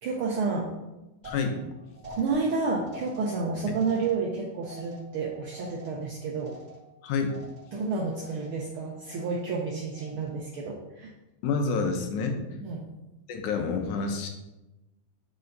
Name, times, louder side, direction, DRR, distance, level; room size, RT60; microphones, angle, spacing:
voice 1, 0.0-0.7 2.1-6.6 7.7-11.1 12.6-12.9, right 4 dB, 80° right, -1 dB, 1.2 m, -30 dB
voice 2, 1.2-1.6 7.0-7.3 11.4-12.6 13.3-14.3, left 4 dB, 85° left, 4 dB, 2.3 m, -28 dB
sound 1, 1.2-7.0 7.3-7.8 8.2-8.7 9.0-9.6 9.9-10.5, equal, 15° right, 1.8 m, -47 dB
7.8 x 5.5 x 3.9 m, 1.0 s
omnidirectional pair, 3.4 m